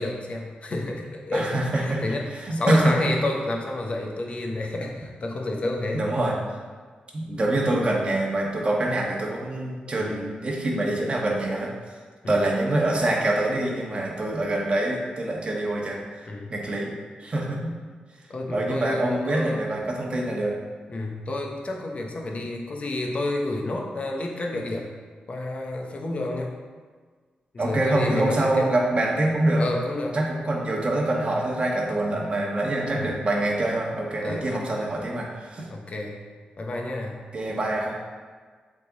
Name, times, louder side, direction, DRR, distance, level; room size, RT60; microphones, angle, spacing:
voice 1, 0.0-6.0 10.0-10.3 12.2-12.3 16.3-16.5 18.3-19.6 20.9-24.9 25.3-26.5 27.5-28.7 29.6-30.2 32.1-32.3 32.9-33.1 34.2-34.5 35.7-36.2 36.6-37.2, left 2 dB, 45° left, 1 dB, 0.9 m, -30 dB
voice 2, 1.3-2.0 2.3-3.2 5.9-6.3 7.1-11.7 12.3-16.9 17.2-17.7 18.5-20.5 27.6-29.6 30.1-35.7 37.3-38.1, right 1 dB, 40° right, -2 dB, 1.3 m, -25 dB
7.7 x 3.9 x 4.0 m, 1.5 s
wide cardioid pair, 105°, 3 cm